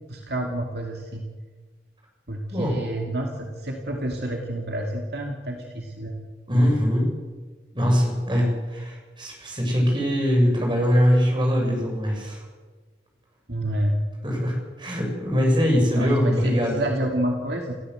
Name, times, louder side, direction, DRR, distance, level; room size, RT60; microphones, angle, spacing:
voice 1, 0.1-1.2 2.3-6.2 6.5-6.6 13.5-14.0 15.9-17.7, right 1 dB, 60° right, 1 dB, 2.7 m, -29 dB
voice 2, 6.5-7.1 7.7-12.4 14.2-16.7, equal, 25° right, 0 dB, 7.0 m, -22 dB
29.5 x 15.0 x 8.0 m, 1.4 s
head